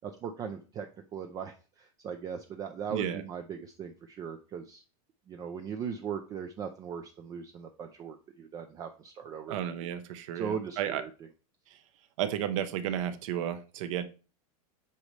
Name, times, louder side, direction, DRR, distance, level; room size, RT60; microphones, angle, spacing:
voice 1, 0.0-4.8 5.3-9.6 10.3-11.1, right 7 dB, 20° right, 6 dB, 0.4 m, -39 dB
voice 2, 2.9-3.2 9.5-11.0 11.7-11.8 12.2-14.0, right 10 dB, 60° right, 10 dB, 1.0 m, -33 dB
8.2 x 5.3 x 3.2 m, 0.36 s
supercardioid pair, 160°, 19 cm